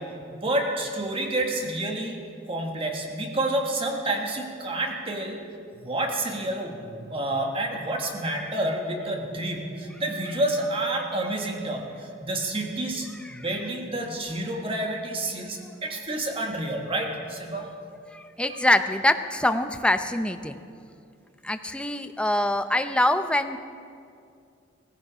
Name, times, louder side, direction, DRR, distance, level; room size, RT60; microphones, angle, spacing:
voice 1, 0.0-5.4 5.7-17.7 18.5-18.6, right 1 dB, 30° right, 2 dB, 1.6 m, -29 dB
voice 2, 18.1-20.6 21.4-23.6, left 1 dB, 5° left, 8 dB, 0.6 m, -24 dB
16.5 x 15.5 x 4.9 m, 2.4 s
head